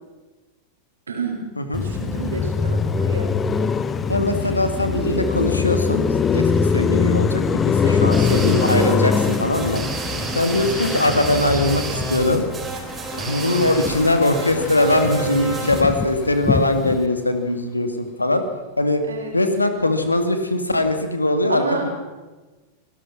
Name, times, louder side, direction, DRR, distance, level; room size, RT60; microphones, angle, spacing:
voice 1, 1.1-1.4 1.8-3.5 7.8-8.4 19.1-19.4 21.5-21.9, right 4 dB, 70° right, 3 dB, 5.1 m, -30 dB
Car passing by, 1.7-14.2 14.5-17.0, left 5 dB, 20° left, 1.1 m, -23 dB
voice 2, 4.1-6.0 6.3-9.8 10.3-12.4 13.2-18.4 18.8-19.0 19.3-21.9, left 2 dB, 85° left, 8 dB, 2.2 m, -21 dB
sound 1, 8.1-15.8, right 3 dB, 20° right, 4.4 m, -30 dB
Engine, 12.7-18.0, left 4 dB, 50° left, 4.1 m, -37 dB
25.5 x 18.0 x 6.1 m, 1.2 s
figure-of-eight pair, 90°, 0 cm